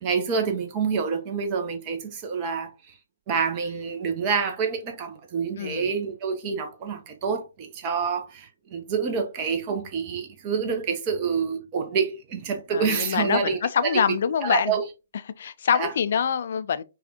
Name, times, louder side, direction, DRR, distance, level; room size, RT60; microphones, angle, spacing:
voice 1, 0.0-2.9 3.3-14.0 14.4-14.8 15.7-15.9, right 6 dB, 30° right, 0.8 m, -27 dB
voice 2, 5.6-5.9 12.7-14.7 15.4-16.8, left 7 dB, 50° left, 0.4 m, -25 dB
5.1 x 2.4 x 2.8 m
figure-of-eight pair, 130°, 0 cm